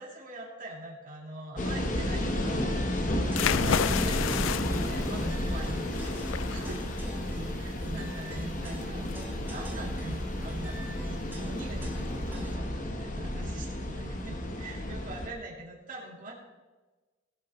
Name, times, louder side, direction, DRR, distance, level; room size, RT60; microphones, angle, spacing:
voice 1, 0.0-2.7 3.2-7.1 7.6-16.4, right 1 dB, 45° right, -4 dB, 3.0 m, -43 dB
sound 1, 1.6-15.3, left 1 dB, 40° left, 1.1 m, -32 dB
sound 2, 2.0-12.8, right 1 dB, 10° right, 1.5 m, -44 dB
sound 3, 3.3-12.6, left 9 dB, 90° left, 0.4 m, -35 dB
20.5 x 7.9 x 3.1 m, 1.2 s
head